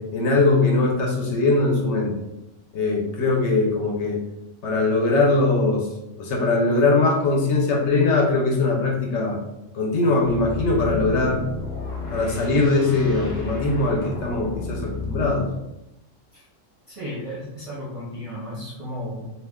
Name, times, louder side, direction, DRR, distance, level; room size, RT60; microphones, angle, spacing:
voice 1, 0.0-2.1 2.7-4.2 4.6-5.9 6.2-9.4 9.7-11.4 12.1-15.5, left 3 dB, 70° left, -1 dB, 0.9 m, -21 dB
sound 1, 10.2-15.5, left 2 dB, 30° left, 0.3 m, -31 dB
voice 2, 16.9-19.2, equal, 35° right, -7 dB, 0.6 m, -34 dB
2.4 x 2.2 x 3.5 m, 0.95 s
omnidirectional pair, 1.3 m